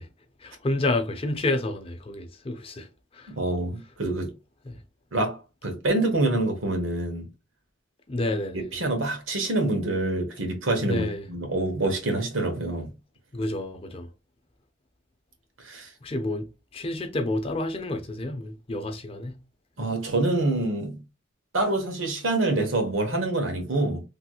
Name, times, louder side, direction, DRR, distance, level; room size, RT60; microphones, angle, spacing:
voice 1, 0.4-2.9 3.1-3.3 4.6-4.8 8.1-8.7 10.8-11.3 13.3-14.1 16.0-19.4, left 2 dB, 30° left, 0.5 m, -29 dB
voice 2, 3.3-4.3 5.1-7.3 8.7-12.9 15.6-15.9 19.8-21.0 21.5-24.0, right 2 dB, 85° right, 1.2 m, -26 dB
3.3 x 2.9 x 2.3 m
head